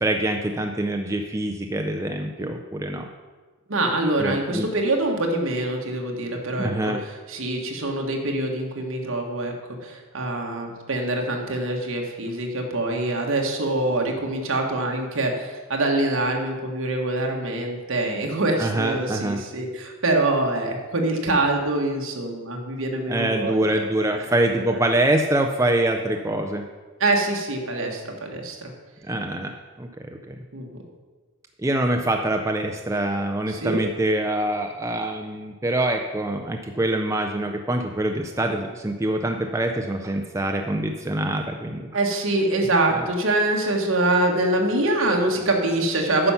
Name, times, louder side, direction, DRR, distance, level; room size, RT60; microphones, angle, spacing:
voice 1, 0.0-3.0 4.2-4.7 6.6-7.0 18.6-19.4 23.1-26.6 29.1-29.5 29.8-30.3 31.6-41.9 42.9-43.1, right 1 dB, 15° right, 4 dB, 0.4 m, -25 dB
voice 2, 3.7-6.9 7.3-9.5 9.8-23.6 24.1-24.2 24.7-24.8 27.0-28.7 30.5-30.8 33.5-33.8 41.9-46.3, right 2 dB, 65° right, 2 dB, 1.4 m, -24 dB
9.6 x 5.7 x 5.7 m, 1.4 s
head